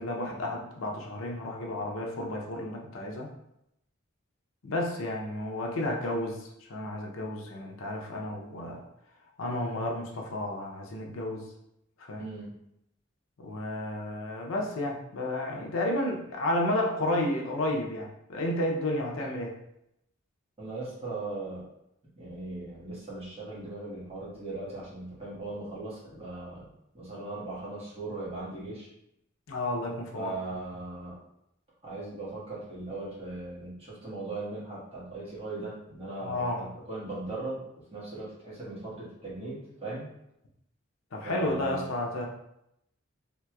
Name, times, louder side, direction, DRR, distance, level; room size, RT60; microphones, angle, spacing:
voice 1, 0.0-3.3 4.6-8.8 9.4-11.5 12.0-12.3 13.4-19.5 29.5-30.3 36.2-36.6 41.1-42.3, left 1 dB, 80° left, 1 dB, 0.6 m, -32 dB
voice 2, 12.2-12.5 20.6-21.7 22.2-28.9 30.1-31.2 31.8-37.6 37.9-40.1 41.2-41.9, right 2 dB, 30° right, -8 dB, 1.5 m, -38 dB
3.3 x 2.9 x 2.3 m, 0.80 s
head